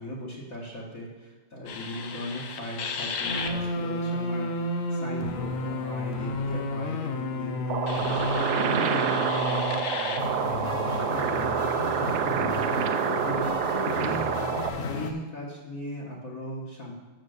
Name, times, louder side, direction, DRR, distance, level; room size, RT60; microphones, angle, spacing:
voice 1, 0.0-13.5 13.9-14.3 14.9-16.9, equal, 45° left, -4 dB, 1.6 m, -38 dB
sound 1, 1.7-15.1, left 3 dB, 80° left, 0.7 m, -31 dB
sound 2, 7.7-14.7, right 8 dB, 80° right, 1.5 m, -27 dB
7.7 x 6.7 x 6.4 m, 1.2 s
omnidirectional pair, 2.4 m